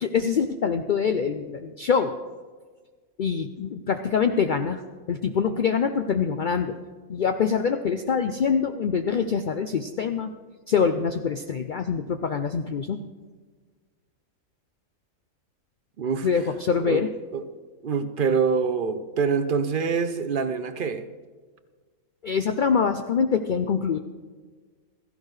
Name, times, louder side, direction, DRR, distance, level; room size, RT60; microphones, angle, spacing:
voice 1, 0.0-2.2 3.2-4.8 5.1-6.8 7.1-10.3 10.7-13.0 16.2-17.1 22.2-24.0, left 6 dB, 80° left, 0.4 m, -24 dB
voice 2, 16.0-16.3 16.8-17.0 17.3-17.4 17.8-21.1, right 5 dB, 50° right, 0.6 m, -25 dB
15.5 x 15.0 x 3.2 m
omnidirectional pair, 1.5 m